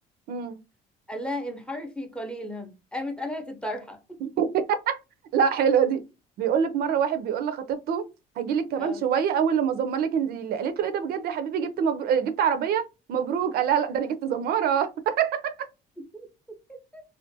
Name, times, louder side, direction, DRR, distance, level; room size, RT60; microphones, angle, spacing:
voice 1, 1.1-4.2 8.8-9.0 16.1-17.0, left 1 dB, 5° left, 0.5 m, -35 dB
voice 2, 4.2-5.0 5.3-6.0 6.4-8.1 8.4-12.8 13.1-15.5, right 7 dB, 65° right, 0.4 m, -25 dB
2.5 x 2.1 x 2.6 m
cardioid pair, 110°, 17 cm